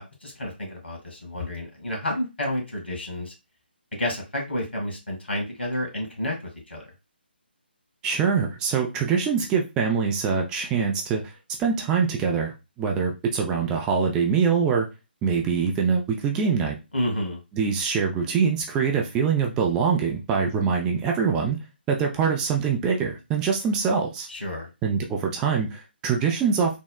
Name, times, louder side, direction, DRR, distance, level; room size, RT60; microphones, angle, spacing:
voice 1, 0.0-3.3 4.0-6.4 6.7-6.9 16.9-17.4 24.3-24.7, left 1 dB, 80° left, 0 dB, 1.7 m, -30 dB
voice 2, 8.0-11.2 11.6-14.9 15.2-16.8 17.5-21.6 21.9-24.3 24.8-26.8, right 6 dB, 10° right, 1 dB, 0.3 m, -24 dB
3.5 x 2.0 x 2.2 m, 0.26 s
figure-of-eight pair, 145°, 6 cm